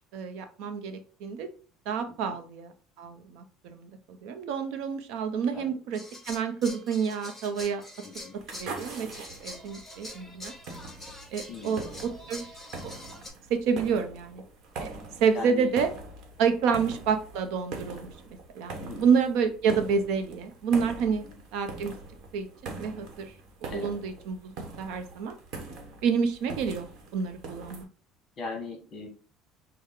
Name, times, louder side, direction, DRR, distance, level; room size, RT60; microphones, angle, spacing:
voice 1, 0.1-1.5 1.9-2.7 3.0-6.0 6.3-7.8 8.5-9.1 9.4-10.5 11.3-12.5 12.8-12.9 13.5-14.4 14.8-14.9 15.2-15.9 16.4-18.1 18.5-21.2 21.5-21.9 22.3-23.3 23.6-25.4 26.0-26.9 27.1-27.9, right 6 dB, 70° right, 7 dB, 0.7 m, -28 dB
sound 1, 5.9-13.3, left 1 dB, ahead, 2.5 m, -45 dB
voice 2, 8.0-8.4 11.5-11.8 15.3-15.7 18.8-19.1 21.2-21.4 23.7-23.9 28.4-29.1, left 3 dB, 30° left, 3 dB, 1.5 m, -39 dB
sound 2, 8.3-27.8, right 3 dB, 50° right, 1.1 m, -43 dB
6.4 x 2.2 x 3.7 m, 0.38 s
cardioid pair, 160°, 0 cm